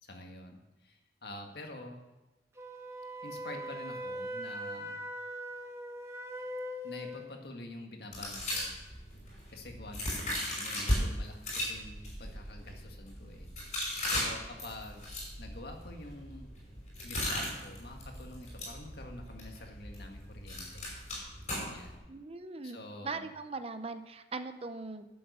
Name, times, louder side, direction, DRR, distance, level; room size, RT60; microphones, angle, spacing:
voice 1, 0.0-2.0 3.2-5.0 6.8-8.8 9.5-13.5 14.1-15.0 15.4-16.5 17.0-20.9 21.7-22.0 22.6-23.3, left 1 dB, 60° left, 2 dB, 1.8 m, -47 dB
Wind instrument woodwind instrument, 2.6-7.3, equal, 15° right, 1.1 m, -40 dB
sound 1, 8.1-11.0 11.4-22.0, left 1 dB, 40° left, 5.5 m, -37 dB
voice 2, 22.1-22.8 23.0-25.1, right 3 dB, 35° right, 10 dB, 0.6 m, -40 dB
12.0 x 7.8 x 6.7 m, 1.1 s
head